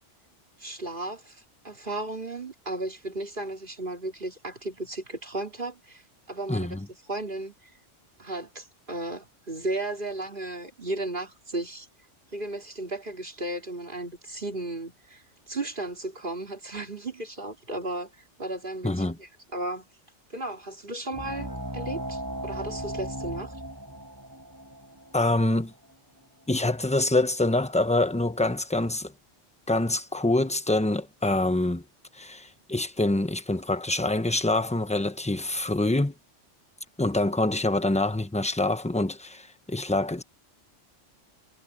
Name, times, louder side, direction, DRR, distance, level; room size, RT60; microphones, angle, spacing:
voice 1, 0.6-6.0 6.3-6.8 7.1-7.7 8.2-11.9 12.3-19.9 20.3-23.6, right 2 dB, 45° right, 3.5 m, -35 dB
voice 2, 6.5-6.8 18.8-19.2 25.1-25.7 26.5-29.1 29.7-31.8 32.1-36.1 37.0-40.2, left 2 dB, 5° left, 0.9 m, -25 dB
sound 1, 21.1-26.2, right 1 dB, 15° right, 5.1 m, -37 dB
omnidirectional pair, 1.2 m